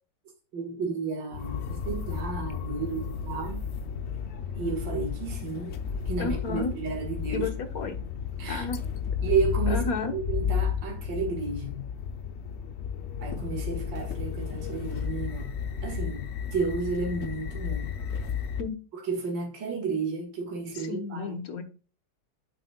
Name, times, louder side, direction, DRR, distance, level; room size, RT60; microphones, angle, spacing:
voice 1, 0.5-3.7 4.5-7.5 8.4-8.7 9.2-11.8 13.2-15.5 15.8-17.9 19.0-21.4, right 4 dB, 75° right, 2.5 m, -32 dB
sound 1, 1.3-18.6, left 7 dB, 70° left, 0.6 m, -33 dB
voice 2, 6.2-6.7 7.3-8.0 8.5-8.8 9.7-10.1 18.6-18.8 20.7-21.6, left 4 dB, 55° left, 1.5 m, -32 dB
9.0 x 7.7 x 2.3 m
omnidirectional pair, 2.0 m